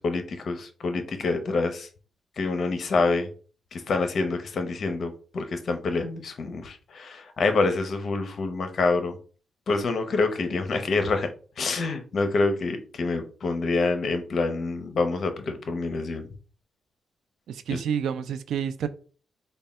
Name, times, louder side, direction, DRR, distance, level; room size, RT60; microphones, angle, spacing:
voice 1, 0.0-1.9 2.4-3.3 3.7-9.2 9.7-11.3 11.6-16.3, left 3 dB, 55° left, 0.7 m, -26 dB
voice 2, 17.5-18.9, right 8 dB, 85° right, 0.4 m, -29 dB
3.5 x 2.2 x 4.2 m
cardioid pair, 110°, 0 cm